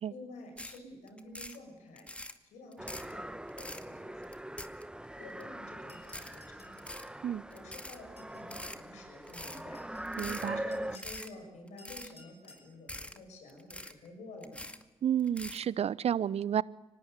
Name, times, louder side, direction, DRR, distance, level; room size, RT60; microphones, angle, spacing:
voice 1, 0.1-2.1 2.4-3.3 3.5-4.7 5.2-6.9 7.5-9.8 10.6-14.7, left 2 dB, 75° left, 7.2 m, -50 dB
sound 1, 0.6-0.8 1.1-1.6 2.0-2.4 2.7-3.1 3.5-3.9 4.2-5.1 5.4-5.5 6.0-6.4 6.7-7.1 7.5-8.0 8.4-8.8 9.3-9.6 10.1-10.5 10.9-11.3 11.7-12.1 12.4-12.6 12.9-13.2 13.5-14.1 14.4-14.8 15.2-15.6, left 1 dB, 10° left, 2.2 m, -44 dB
sound 2, 2.8-11.0, right 1 dB, 5° right, 1.1 m, -42 dB
sound 3, 5.9-6.8 7.9-8.5 9.5-10.1 10.7-11.3 11.8-12.7, left 3 dB, 55° left, 5.9 m, -57 dB
voice 2, 10.2-10.6 15.0-16.6, right 9 dB, 60° right, 0.7 m, -30 dB
25.0 x 19.0 x 9.3 m
hypercardioid pair, 45°, 12 cm